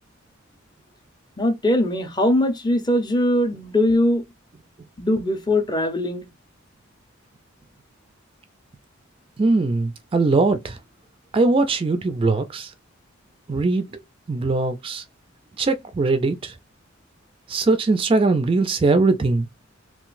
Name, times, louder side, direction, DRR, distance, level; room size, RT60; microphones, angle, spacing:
voice 1, 1.4-4.2 5.0-6.3, left 1 dB, 20° left, 0.6 m, -21 dB
voice 2, 9.4-10.8 11.3-12.7 13.5-14.0 14.3-15.0 15.6-16.5 17.5-19.5, right 3 dB, 25° right, 0.3 m, -21 dB
3.8 x 2.4 x 2.5 m
head